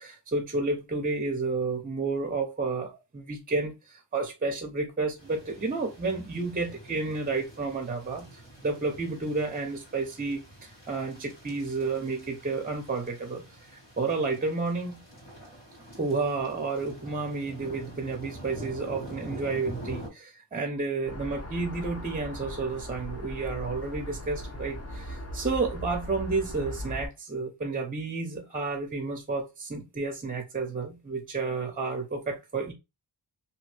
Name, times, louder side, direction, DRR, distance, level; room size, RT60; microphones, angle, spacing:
voice 1, 0.0-15.0 16.0-32.7, right 3 dB, 20° right, 0.5 m, -31 dB
sound 1, 5.2-20.1, right 1 dB, 75° left, 1.7 m, -46 dB
sound 2, 21.0-27.1, equal, 35° left, 0.8 m, -38 dB
2.7 x 2.6 x 3.2 m
wide cardioid pair, 170°, 43 cm